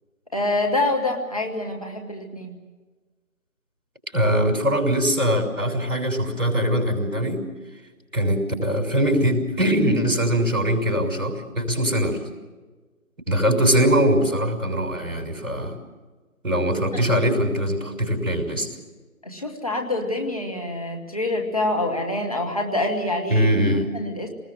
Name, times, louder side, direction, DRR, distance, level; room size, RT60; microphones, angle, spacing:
voice 1, 0.3-2.6 16.9-17.0 19.2-23.5 23.9-24.3, left 2 dB, 25° left, 1 dB, 1.5 m, -26 dB
voice 2, 4.1-7.4 8.1-12.2 13.3-15.8 16.4-18.7 23.3-23.9, equal, 60° right, 3 dB, 5.8 m, -22 dB
26.0 x 20.0 x 7.7 m, 1.3 s
figure-of-eight pair, 165°, 43 cm